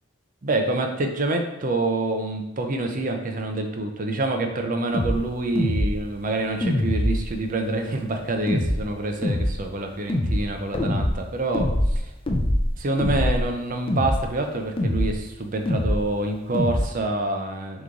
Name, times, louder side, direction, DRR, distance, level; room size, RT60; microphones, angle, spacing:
voice 1, 0.4-12.0 12.8-17.8, right 2 dB, 40° right, 4 dB, 0.5 m, -27 dB
sound 1, 4.9-5.2 5.6-6.0 6.6-7.3 8.5-8.8 9.2-9.6 10.1-10.4 10.7-11.1 11.5-12.0 12.3-12.7 13.0-13.4 13.9-14.2 14.8-15.1 15.7-16.0 16.5-16.8, left 1 dB, 25° left, 0.4 m, -23 dB
3.6 x 3.0 x 3.8 m, 0.95 s
head